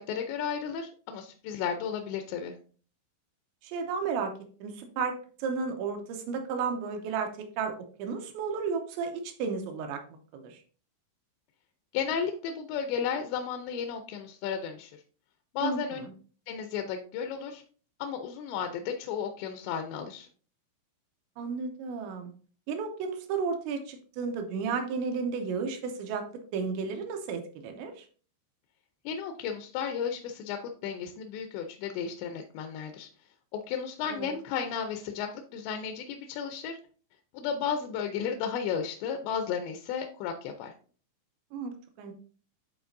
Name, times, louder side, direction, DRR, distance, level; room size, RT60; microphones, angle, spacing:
voice 1, 0.0-2.5 11.9-15.0 15.5-16.0 16.5-17.6 18.0-20.3 29.1-33.1 33.5-36.8 37.3-40.7, left 7 dB, 80° left, 5 dB, 2.6 m, -33 dB
voice 2, 3.6-4.3 4.6-10.0 10.3-10.6 15.6-16.1 21.4-22.3 22.7-26.3 26.5-28.1 34.0-34.3 41.5-42.2, right 5 dB, 80° right, 5 dB, 2.9 m, -33 dB
11.0 x 4.2 x 2.6 m, 0.41 s
omnidirectional pair, 5.5 m